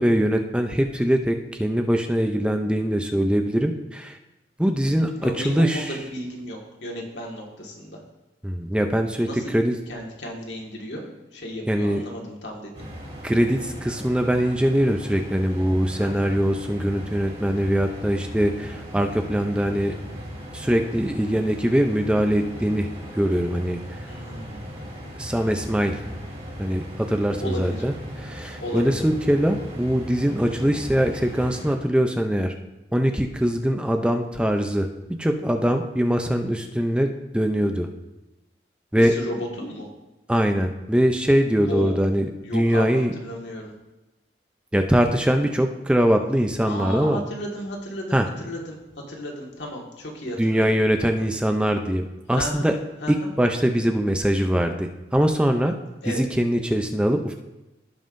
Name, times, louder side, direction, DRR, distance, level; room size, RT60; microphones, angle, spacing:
voice 1, 0.0-4.2 4.6-6.0 8.4-9.8 11.7-12.0 13.2-19.9 20.5-22.9 23.2-23.8 25.2-26.0 26.6-32.5 32.9-34.9 35.2-37.9 38.9-39.2 40.3-43.1 44.7-47.2 48.1-48.3 50.4-52.7 53.1-55.7 56.1-57.3, equal, 5° right, 5 dB, 0.4 m, -22 dB
voice 2, 4.8-8.0 9.2-9.5 9.9-11.0 11.3-12.9 16.0-16.3 24.1-24.8 27.4-27.8 28.6-29.0 38.9-39.9 41.6-42.0 42.4-43.7 46.7-48.8 49.1-50.6 52.3-52.7 53.0-53.3 56.0-56.2, equal, 80° left, -1 dB, 1.8 m, -34 dB
sound 1, 12.7-31.7, equal, 35° right, 2.9 m, -38 dB
16.5 x 5.5 x 2.6 m, 1.0 s
head